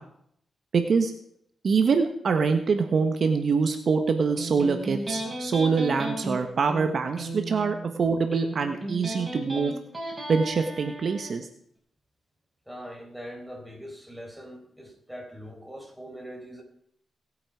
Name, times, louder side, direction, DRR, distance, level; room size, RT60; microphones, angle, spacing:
voice 1, 0.7-1.1 1.6-9.7 10.3-11.5, right 5 dB, 60° right, 6 dB, 1.3 m, -24 dB
Electric guitar, 4.4-11.3, right 1 dB, 20° right, 5.5 m, -35 dB
voice 2, 12.7-16.6, equal, 5° right, 1 dB, 4.2 m, -42 dB
19.0 x 8.7 x 4.7 m, 0.68 s
cardioid pair, 90°, 0 cm